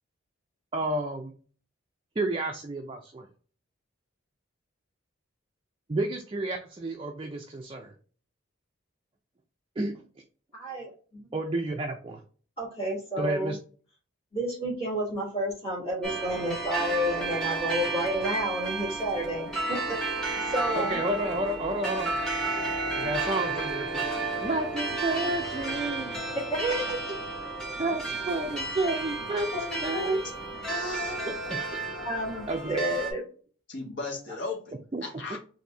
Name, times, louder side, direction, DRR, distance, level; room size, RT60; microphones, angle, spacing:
voice 1, 0.7-1.3 2.2-3.3 5.9-7.9 9.8-9.9 11.3-12.2 13.2-13.6 20.8-22.1 22.9-26.1 26.6-26.8 27.8-30.2 32.5-32.8 34.9-35.0 35.3-35.4, right 2 dB, 25° right, 0.4 m, -31 dB
voice 2, 10.5-11.3 12.6-13.6 14.3-20.0 20.4-21.0 26.5-26.6 32.0-33.2, equal, 30° left, 1.9 m, -30 dB
sound 1, 16.0-33.1, right 3 dB, 5° left, 1.0 m, -32 dB
voice 3, 29.5-30.2 30.6-31.3 33.7-34.7 35.0-35.4, left 3 dB, 60° left, 1.2 m, -35 dB
4.0 x 2.7 x 3.3 m
head